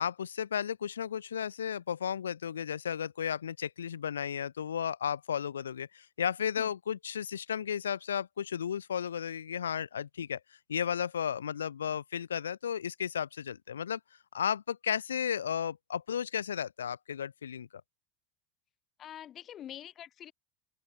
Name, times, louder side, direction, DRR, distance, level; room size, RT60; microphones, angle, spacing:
voice 1, 0.0-10.4 10.7-14.0 14.3-17.7, left 8 dB, 80° left, 1.1 m, -34 dB
voice 2, 19.0-20.3, left 11 dB, 40° left, 2.6 m, -45 dB
open air
figure-of-eight pair, 80°, 0 cm